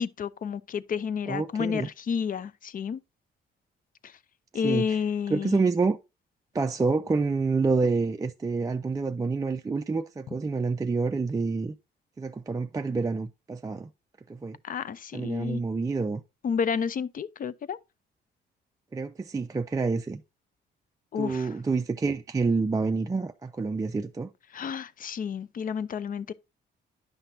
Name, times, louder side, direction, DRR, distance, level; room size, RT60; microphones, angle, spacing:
voice 1, 0.0-3.0 4.0-4.1 4.5-5.6 14.6-15.6 16.4-17.8 21.1-21.5 24.5-26.3, left 6 dB, 45° left, 0.5 m, -30 dB
voice 2, 1.3-1.9 4.5-5.0 5.3-6.0 6.5-11.8 12.2-13.9 14.3-14.6 15.1-16.2 18.9-20.2 21.2-24.3, right 4 dB, 15° right, 0.4 m, -28 dB
9.8 x 5.7 x 2.7 m
cardioid pair, 90°, 20 cm